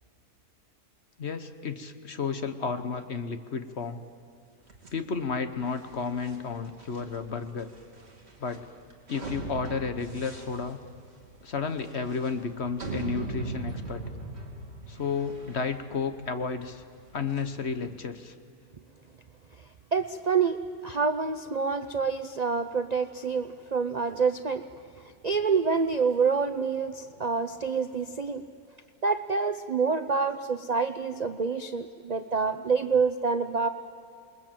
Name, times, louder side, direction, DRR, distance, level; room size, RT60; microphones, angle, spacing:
voice 1, 1.2-4.0 4.9-7.7 8.4-8.7 9.1-10.8 11.4-14.1 14.9-16.8 17.1-18.3, left 5 dB, 45° left, 9 dB, 1.2 m, -32 dB
sound 1, 4.7-17.9, right 3 dB, 40° right, 3.1 m, -41 dB
voice 2, 19.9-20.6 20.8-24.6 25.2-28.4 29.0-33.7, right 5 dB, 60° right, 9 dB, 0.4 m, -27 dB
28.0 x 21.5 x 7.5 m, 2.5 s
omnidirectional pair, 1.7 m